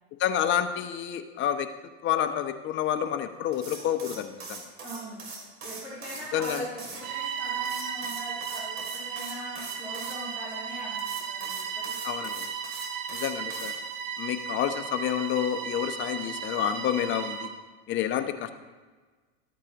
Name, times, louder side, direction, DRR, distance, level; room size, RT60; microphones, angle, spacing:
voice 1, 0.2-1.7 2.0-4.6 6.3-6.6 12.0-12.5 13.1-13.7 14.2-17.5 17.9-18.5, left 10 dB, 35° left, 9 dB, 0.7 m, -29 dB
sound 1, 3.5-7.0 7.6-10.2 11.0-13.7, right 3 dB, 40° right, 2.7 m, -41 dB
voice 2, 4.8-5.2 5.6-11.8, equal, 5° right, -10 dB, 3.5 m, -41 dB
Bowed string instrument, 7.0-17.6, right 7 dB, 65° right, 1.6 m, -35 dB
13.5 x 8.6 x 2.9 m, 1.4 s
supercardioid pair, 115°, 33 cm